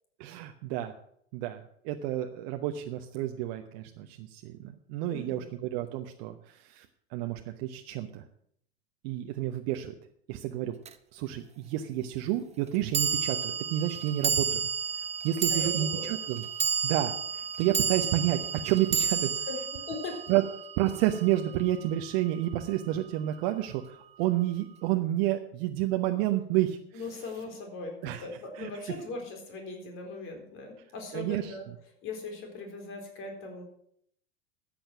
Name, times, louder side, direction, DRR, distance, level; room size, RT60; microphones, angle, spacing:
voice 1, 0.2-0.9 1.3-4.6 4.9-6.9 7.1-8.2 9.0-9.9 10.3-10.7 11.1-14.6 15.2-16.4 16.8-19.3 20.3-20.4 20.8-26.8 28.0-28.3 28.5-28.7 31.1-31.6, right 13 dB, 45° right, 5 dB, 1.0 m, -30 dB
voice 2, 5.1-5.5 15.5-16.1 19.5-20.2 26.9-31.6 32.0-33.6, left 3 dB, 40° left, 3 dB, 4.2 m, -39 dB
sound 1, 10.8-10.9 12.9-21.4, right 6 dB, 20° right, 0.8 m, -31 dB
13.5 x 8.8 x 6.1 m, 0.68 s
figure-of-eight pair, 85°, 33 cm